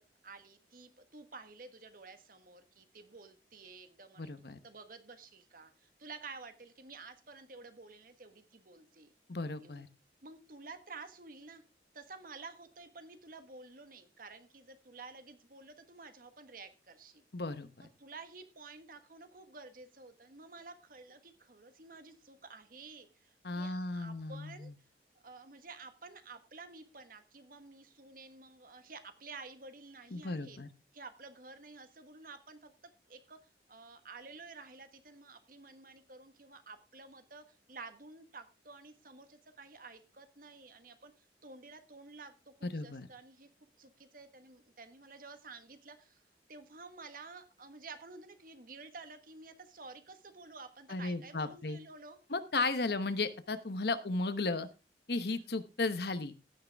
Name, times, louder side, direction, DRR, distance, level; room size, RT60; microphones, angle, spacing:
voice 1, 0.0-4.3 4.6-9.1 9.6-9.8 10.2-11.6 11.9-17.2 17.8-24.7 25.2-30.6 30.9-32.7 33.1-33.4 33.7-43.5 43.8-46.2 46.5-52.2, right 3 dB, 50° right, 9 dB, 1.3 m, -51 dB
voice 2, 4.2-4.6 9.3-9.9 17.3-17.7 23.4-24.7 30.1-30.7 42.6-43.1 50.9-51.8 52.3-54.7 55.1-56.3, left 3 dB, 60° left, 12 dB, 1.0 m, -35 dB
16.0 x 6.6 x 3.5 m, 0.29 s
head